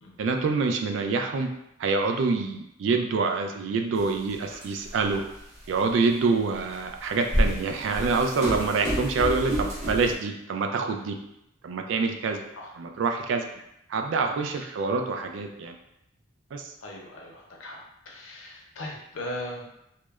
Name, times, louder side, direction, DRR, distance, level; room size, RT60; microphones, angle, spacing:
voice 1, 0.2-1.5 1.8-5.2 5.7-11.2 11.6-12.4 12.7-13.4 13.9-15.8 16.5-16.7, right 4 dB, 70° right, 5 dB, 0.3 m, -26 dB
sound 1, 4.0-4.1 4.5-5.0 5.7-5.8 6.8-10.1, equal, 40° right, 0.8 m, -28 dB
voice 2, 16.8-17.8 18.1-19.6, left 1 dB, 75° left, -1 dB, 0.6 m, -38 dB
2.9 x 2.0 x 2.3 m, 0.81 s
head